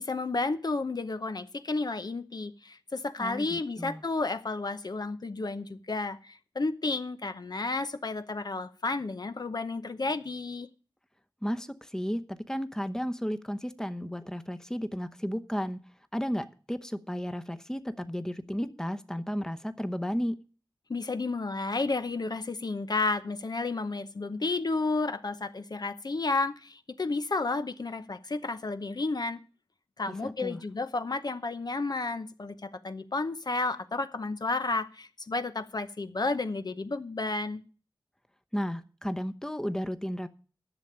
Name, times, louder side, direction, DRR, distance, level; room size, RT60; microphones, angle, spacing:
voice 1, 0.0-10.7 20.9-29.4 30.0-37.6, left 3 dB, 55° left, 0.8 m, -32 dB
voice 2, 3.2-4.0 11.4-15.8 16.1-20.4 30.1-30.6 38.5-40.3, equal, 5° left, 0.9 m, -33 dB
11.0 x 6.8 x 8.7 m
wide cardioid pair, 65°, 8 cm